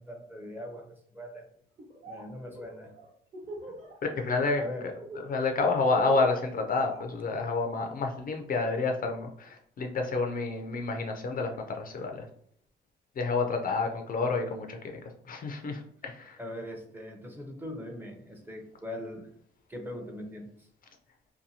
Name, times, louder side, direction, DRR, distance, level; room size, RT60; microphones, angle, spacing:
voice 1, 0.0-1.5 2.0-2.9 4.6-4.9 16.4-19.3 19.7-20.7, left 1 dB, 10° right, 2 dB, 0.6 m, -41 dB
Laughter, 1.8-2.2 2.5-3.9 4.3-4.6 5.0-7.8, right 1 dB, 35° right, 1.0 m, -42 dB
voice 2, 4.0-4.6 5.3-12.2 13.2-15.0 15.3-16.4, left 3 dB, 45° left, 4 dB, 0.4 m, -29 dB
2.7 x 2.2 x 2.7 m, 0.64 s
cardioid pair, 90°, 20 cm